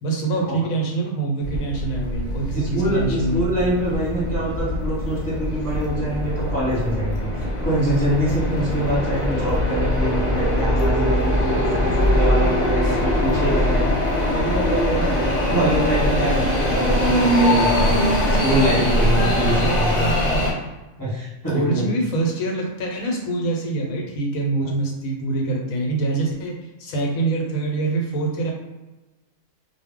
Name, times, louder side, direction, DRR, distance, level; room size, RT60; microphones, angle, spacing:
voice 1, 0.0-3.5 11.6-11.7 12.8-13.0 21.5-28.5, right 2 dB, 80° left, 0 dB, 1.1 m, -25 dB
sound 1, 1.4-20.5, left 1 dB, 45° left, 0.6 m, -22 dB
voice 2, 2.5-13.9 14.3-20.1 21.0-21.8, right 1 dB, 15° left, -10 dB, 1.0 m, -24 dB
2.3 x 2.1 x 3.5 m, 1.1 s
omnidirectional pair, 1.4 m